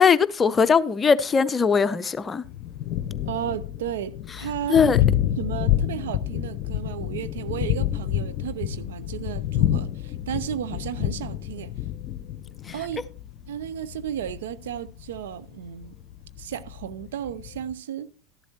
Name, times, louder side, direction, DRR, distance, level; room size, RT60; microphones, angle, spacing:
voice 1, 0.0-2.4 4.7-5.0, left 6 dB, 20° left, 0.7 m, -20 dB
Thunder, 2.4-17.7, left 11 dB, 50° left, 0.7 m, -28 dB
voice 2, 3.3-4.9 5.2-11.7 12.7-13.0 13.5-15.9 16.4-18.1, right 10 dB, 70° right, 0.7 m, -33 dB
13.5 x 11.0 x 2.9 m
figure-of-eight pair, 85°, 0 cm